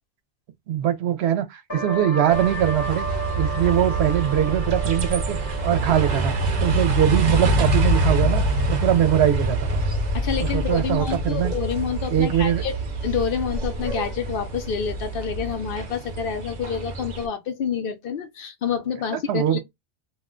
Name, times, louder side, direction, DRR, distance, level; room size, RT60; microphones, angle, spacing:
voice 1, 0.7-3.1 3.3-6.3 6.6-9.9 10.4-11.5 12.1-12.6 19.3-19.6, right 10 dB, 80° right, 0.8 m, -22 dB
sound 1, 1.7-13.0, right 3 dB, 25° left, 0.7 m, -35 dB
sound 2, 2.3-17.3, right 2 dB, 50° right, 0.6 m, -25 dB
voice 2, 10.1-12.8 13.0-19.6, left 7 dB, 65° left, 0.7 m, -28 dB
2.3 x 2.1 x 3.6 m
omnidirectional pair, 1.1 m